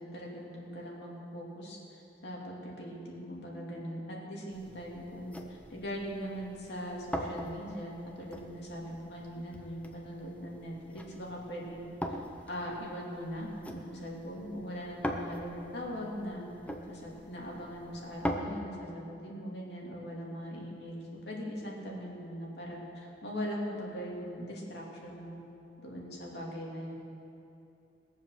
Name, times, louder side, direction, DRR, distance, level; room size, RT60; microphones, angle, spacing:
voice 1, 0.0-16.4 16.9-25.4 25.8-26.9, equal, 65° left, -3 dB, 2.7 m, -40 dB
sound 1, 4.5-18.4, equal, 10° left, 0.8 m, -42 dB
20.5 x 7.4 x 6.5 m, 2.8 s
head